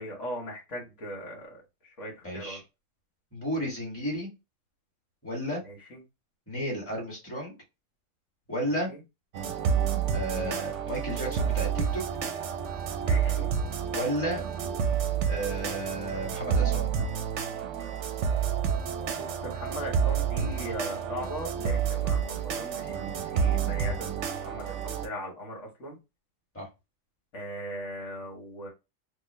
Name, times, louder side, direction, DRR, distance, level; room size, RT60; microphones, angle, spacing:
voice 1, 0.0-2.6 5.6-6.0 8.9-9.0 13.0-13.5 19.2-26.0 27.3-28.7, equal, 65° left, -2 dB, 1.5 m, -39 dB
voice 2, 2.2-2.6 3.3-4.3 5.2-5.6 6.5-7.6 8.5-8.9 10.1-12.0 13.9-14.4 15.2-16.9 26.5-26.7, equal, 10° left, -2 dB, 1.5 m, -32 dB
sound 1, 9.3-25.1, right 7 dB, 70° right, 0.9 m, -29 dB
3.8 x 2.3 x 3.1 m, 0.25 s
omnidirectional pair, 1.4 m